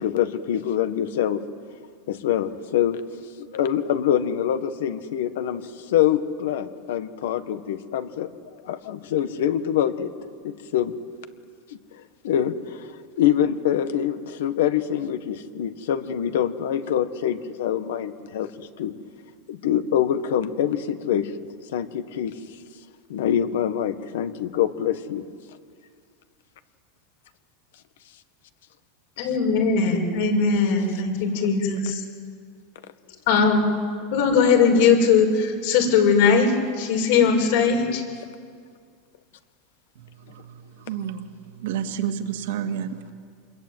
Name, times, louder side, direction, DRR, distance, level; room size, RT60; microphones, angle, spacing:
voice 1, 0.0-1.4 2.1-3.0 3.4-8.3 8.6-10.1 10.4-10.9 11.7-18.9 19.5-21.3 21.7-22.4 23.1-25.2, left 10 dB, 80° left, 11 dB, 1.7 m, -25 dB
voice 2, 29.2-32.0 33.3-33.7 34.1-38.0, left 5 dB, 65° left, 1 dB, 6.3 m, -20 dB
voice 3, 40.0-41.3 41.5-43.1, right 9 dB, 75° right, 6 dB, 2.2 m, -30 dB
27.5 x 22.0 x 9.2 m, 2.1 s
supercardioid pair, 165°, 0 cm